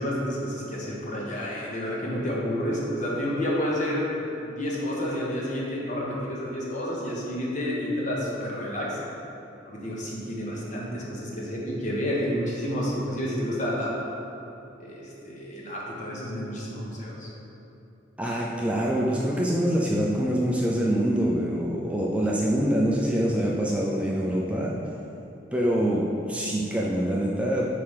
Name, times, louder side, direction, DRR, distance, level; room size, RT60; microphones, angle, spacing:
voice 1, 0.0-4.0 4.4-9.0 9.6-14.0 14.8-17.3 23.0-23.2, equal, 40° left, -4 dB, 1.2 m, -30 dB
voice 2, 18.2-24.7 25.5-26.0 26.3-27.7, equal, 5° right, -4 dB, 0.4 m, -25 dB
4.8 x 4.8 x 5.6 m, 2.9 s
head